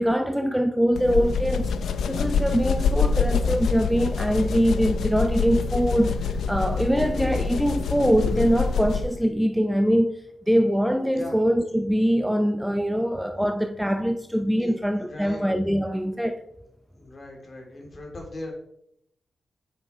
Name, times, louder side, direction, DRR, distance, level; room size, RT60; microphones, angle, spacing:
voice 1, 0.0-1.7 2.1-10.2 10.5-16.4, equal, ahead, 0.5 m, -23 dB
sound 1, 1.0-9.2, left 5 dB, 90° left, 0.6 m, -26 dB
voice 2, 11.0-11.4 13.0-13.5 14.6-15.5 16.9-18.5, left 1 dB, 40° left, 2.9 m, -40 dB
9.3 x 7.3 x 4.4 m
wide cardioid pair, 130°, 0 cm